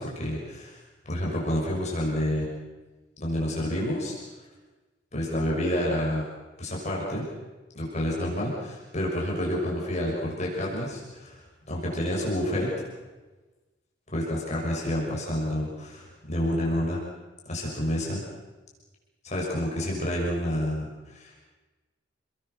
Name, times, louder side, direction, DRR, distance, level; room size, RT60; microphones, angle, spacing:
voice 1, 0.0-2.5 3.2-4.2 5.1-6.2 6.6-7.2 7.7-12.8 14.1-17.0 17.5-18.2 19.2-21.4, equal, 40° left, -3 dB, 6.4 m, -29 dB
29.5 x 21.0 x 6.8 m, 1.2 s
head